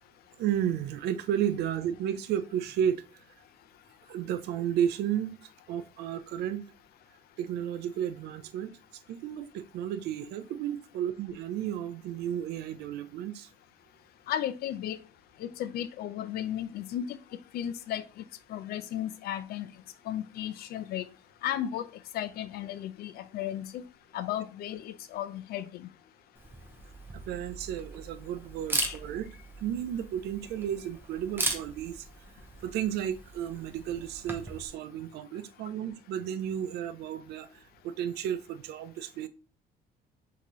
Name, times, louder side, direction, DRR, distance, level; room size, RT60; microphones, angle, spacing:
voice 1, 0.4-3.2 4.1-5.4 5.7-6.7 7.4-8.7 9.1-13.5 27.1-29.3 29.6-32.1 32.6-39.3, right 10 dB, 80° right, 0.5 m, -33 dB
voice 2, 14.3-15.0 15.4-17.2 17.5-18.2 18.5-19.7 20.1-21.1 21.4-21.9 22.1-23.8 24.1-25.9 28.8-29.0, left 11 dB, 70° left, 0.5 m, -34 dB
Camera, 26.4-34.7, right 2 dB, 15° right, 0.7 m, -38 dB
5.9 x 2.9 x 3.0 m
cardioid pair, 160°, 17 cm